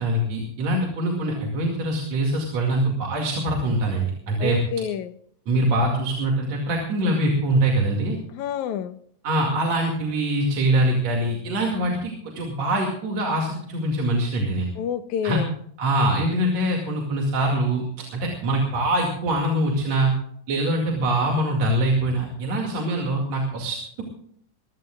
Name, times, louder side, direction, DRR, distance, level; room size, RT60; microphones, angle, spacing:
voice 1, 0.0-4.6 5.5-8.2 9.2-14.7 15.2-15.4 15.8-17.8 18.1-20.1 20.5-24.0, right 1 dB, 65° right, 0 dB, 3.4 m, -23 dB
voice 2, 4.4-5.1 8.3-9.0 14.8-15.5, left 8 dB, 85° left, 12 dB, 2.3 m, -28 dB
23.0 x 15.5 x 2.4 m, 0.64 s
omnidirectional pair, 3.3 m